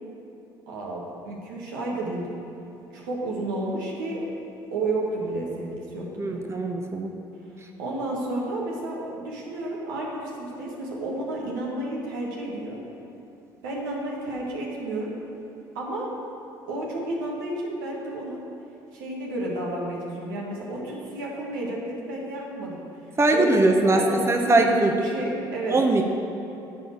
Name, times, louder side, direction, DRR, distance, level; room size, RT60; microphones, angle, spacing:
voice 1, 0.7-2.3 2.9-4.3 4.7-6.4 7.8-12.8 13.6-15.1 15.7-16.1 16.7-18.4 18.9-22.8 23.3-24.2 24.4-25.8, right 1 dB, 90° right, -3 dB, 1.6 m, -31 dB
voice 2, 6.2-7.1 23.2-24.0 24.3-24.9 25.7-26.0, right 2 dB, 25° right, 3 dB, 0.9 m, -21 dB
10.5 x 4.0 x 7.5 m, 2.8 s
hypercardioid pair, 65°, 11 cm